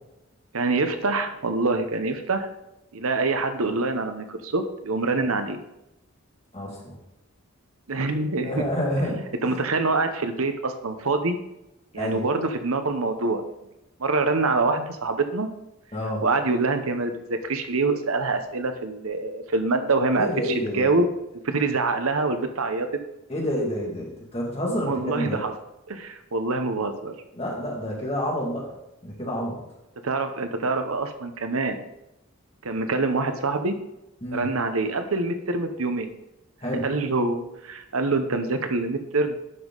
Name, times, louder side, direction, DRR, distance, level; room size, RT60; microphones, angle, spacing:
voice 1, 0.5-2.5 2.9-5.6 7.9-8.6 9.1-11.4 11.9-13.4 14.0-15.5 16.2-21.1 21.4-22.9 24.8-25.5 25.9-27.1 30.0-31.8 32.6-33.7 34.3-36.1 36.8-39.4, right 3 dB, 80° right, 7 dB, 1.0 m, -25 dB
voice 2, 6.5-7.0 8.4-9.2 9.4-9.6 12.0-12.2 15.9-16.2 20.1-20.9 23.3-25.4 27.3-28.7 29.0-29.6 34.2-34.5 36.6-36.8, equal, 30° left, -2 dB, 2.4 m, -28 dB
11.0 x 5.5 x 4.0 m, 0.90 s
head